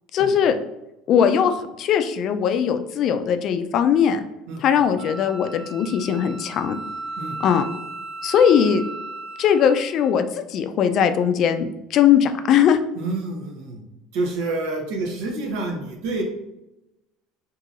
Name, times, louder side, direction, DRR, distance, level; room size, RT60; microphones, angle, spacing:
voice 1, 0.1-0.6 1.1-4.2 4.6-6.8 7.4-7.6 8.2-8.8 9.4-12.8, left 8 dB, 50° left, 9 dB, 0.4 m, -19 dB
voice 2, 4.5-4.9 7.2-7.4 12.9-13.8 14.1-16.2, right 2 dB, 80° right, 1 dB, 0.8 m, -28 dB
Wind instrument woodwind instrument, 5.0-10.1, right 2 dB, 35° right, 1.0 m, -36 dB
4.7 x 2.7 x 2.5 m, 0.92 s
supercardioid pair, 115°, 0 cm